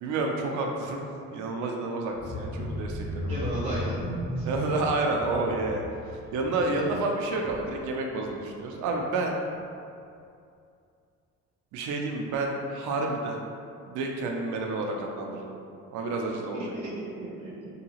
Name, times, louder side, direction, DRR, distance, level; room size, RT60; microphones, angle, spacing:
voice 1, 0.0-1.0 1.3-3.3 4.4-5.8 6.3-9.4 11.7-13.4 13.9-15.6 15.9-16.6, right 2 dB, 80° right, 1 dB, 0.5 m, -29 dB
sound 1, 2.1-7.9 8.3-8.5 8.9-9.0, left 1 dB, 45° left, 1.4 m, -36 dB
voice 2, 3.3-3.9 4.4-4.6 6.7-6.8 16.3-16.6 17.0-17.7, right 1 dB, 20° right, -11 dB, 0.5 m, -35 dB
2.8 x 2.7 x 2.8 m, 2.5 s
cardioid pair, 150°, 30 cm